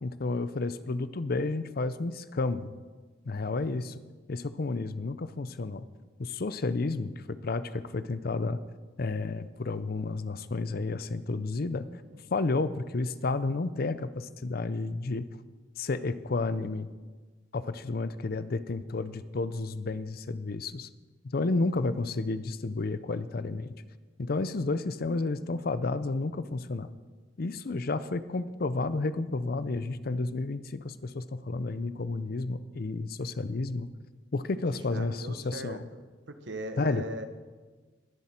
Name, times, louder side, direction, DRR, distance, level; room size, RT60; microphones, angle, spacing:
voice 1, 0.0-2.7 3.2-3.9 4.3-5.9 6.2-8.6 9.0-11.9 12.3-15.3 15.8-16.9 17.5-20.9 21.2-23.7 24.2-26.9 27.4-33.9 34.3-35.8 36.8-37.1, left 3 dB, 55° left, 14 dB, 0.6 m, -31 dB
voice 2, 34.7-36.0 36.3-37.3, right 1 dB, 70° right, 8 dB, 1.1 m, -40 dB
21.0 x 7.4 x 4.4 m, 1.3 s
head